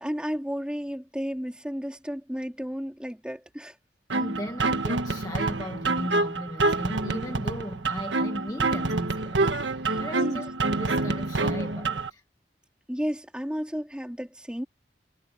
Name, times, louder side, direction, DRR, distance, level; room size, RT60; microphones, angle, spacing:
voice 1, 0.0-3.7 4.6-4.7 9.9-10.4 12.9-14.6, equal, 5° right, 2.9 m, -33 dB
voice 2, 4.1-12.2, equal, 20° left, 1.3 m, -37 dB
sound 1, 4.1-12.1, right 3 dB, 90° right, 1.6 m, -27 dB
head